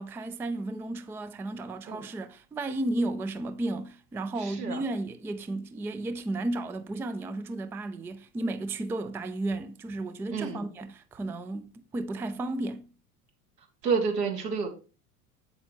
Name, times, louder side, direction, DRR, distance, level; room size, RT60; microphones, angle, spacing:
voice 1, 0.0-12.9, right 2 dB, 5° right, 0.4 m, -33 dB
voice 2, 4.4-4.8 10.3-10.7 13.8-14.7, right 5 dB, 80° right, 2.4 m, -29 dB
8.1 x 7.8 x 3.0 m
figure-of-eight pair, 80°, 47 cm